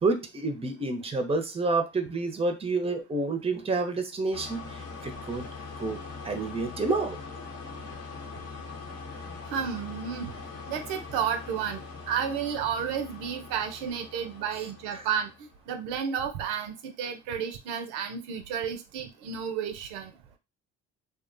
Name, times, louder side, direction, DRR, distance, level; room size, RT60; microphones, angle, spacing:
voice 1, 0.0-5.4 5.8-6.0 6.2-7.2, right 3 dB, 15° right, 6 dB, 0.6 m, -29 dB
sound 1, 4.3-15.5, left 4 dB, 40° left, 0.8 m, -42 dB
voice 2, 9.5-10.3 10.7-20.1, right 7 dB, 75° right, 6 dB, 0.5 m, -32 dB
2.4 x 2.1 x 2.5 m, 0.25 s
hypercardioid pair, 60°, 38 cm